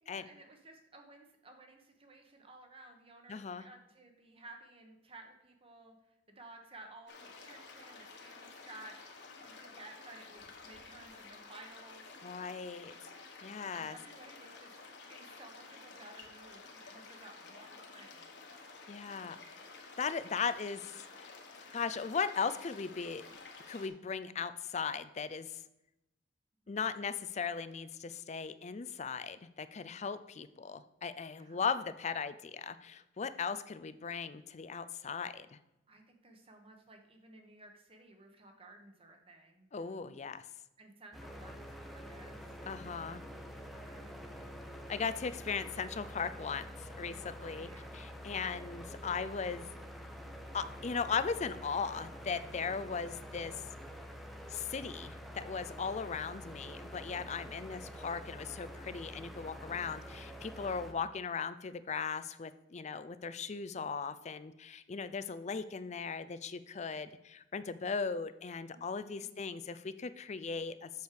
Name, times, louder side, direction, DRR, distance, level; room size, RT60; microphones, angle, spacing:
voice 1, 0.0-12.1 13.7-14.7 15.1-18.4 31.4-31.7 35.9-39.7 40.8-42.5 43.8-44.5 47.5-48.0 52.5-52.8 57.2-57.6 68.7-69.3, right 2 dB, 30° right, 4 dB, 1.4 m, -56 dB
voice 2, 3.3-3.6 12.2-12.9 13.4-14.0 18.9-19.4 20.0-21.3 21.7-23.3 23.7-25.6 26.7-35.6 39.7-40.4 42.7-43.2 44.9-47.7 47.9-49.7 50.5-53.5 54.5-70.9, left 5 dB, 35° left, 13 dB, 0.5 m, -38 dB
sound 1, 7.1-23.9, left 4 dB, 65° left, 1.5 m, -52 dB
sound 2, 41.1-60.9, equal, ahead, 0.9 m, -47 dB
8.0 x 6.5 x 5.0 m, 0.90 s
head